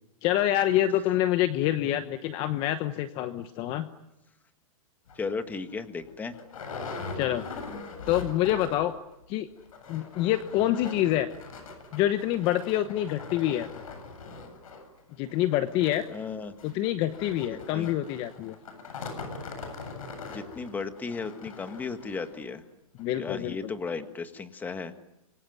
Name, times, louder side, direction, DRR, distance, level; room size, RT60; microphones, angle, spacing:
voice 1, 0.2-3.9 7.1-7.4 8.1-8.9 9.3-9.5 9.9-11.3 11.9-13.7 15.2-16.0 16.6-18.5 23.0-23.6, left 13 dB, 30° left, 10 dB, 1.1 m, -26 dB
sound 1, 5.1-5.2 5.7-5.8 6.0-9.0 9.2-9.3 9.6-22.4 23.0-23.1 23.5-23.6, left 4 dB, 70° left, 7.9 m, -42 dB
voice 2, 5.1-6.4 16.1-16.5 17.7-17.9 20.3-22.6 23.2-24.9, left 4 dB, 10° left, 9 dB, 1.6 m, -35 dB
27.5 x 23.5 x 9.3 m, 0.89 s
hypercardioid pair, 155°, 18 cm